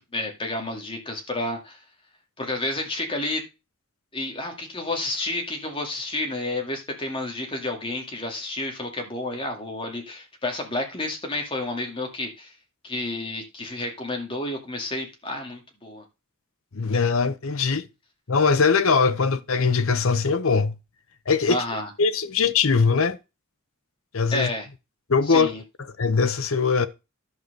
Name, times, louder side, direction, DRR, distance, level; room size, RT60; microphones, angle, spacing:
voice 1, 0.1-1.8 2.4-3.4 4.1-12.6 12.8-16.0 21.5-21.9 24.3-24.7 25.3-25.6, left 2 dB, 25° left, 2.1 m, -30 dB
voice 2, 16.7-17.9 18.3-20.7 21.3-21.6 22.0-23.2 24.1-24.5 25.1-25.5 26.0-26.9, left 5 dB, 70° left, 0.8 m, -21 dB
11.0 x 4.6 x 6.6 m
head